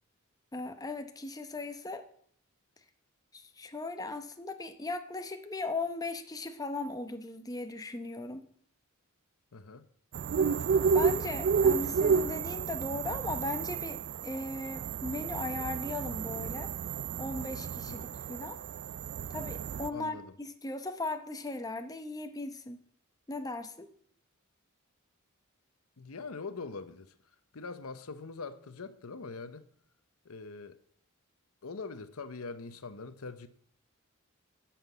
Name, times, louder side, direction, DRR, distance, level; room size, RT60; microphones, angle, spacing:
voice 1, 0.5-2.0 3.3-8.5 10.9-16.7 17.2-18.6 19.3-22.8 23.3-23.9, left 2 dB, 15° left, 0.8 m, -38 dB
voice 2, 9.5-9.9 17.9-18.1 19.9-20.3 26.0-27.1 27.5-29.7 30.2-30.8 31.6-33.5, left 4 dB, 75° left, 0.8 m, -43 dB
sound 1, 10.1-19.9, right 6 dB, 50° right, 0.3 m, -31 dB
10.0 x 5.9 x 8.2 m
head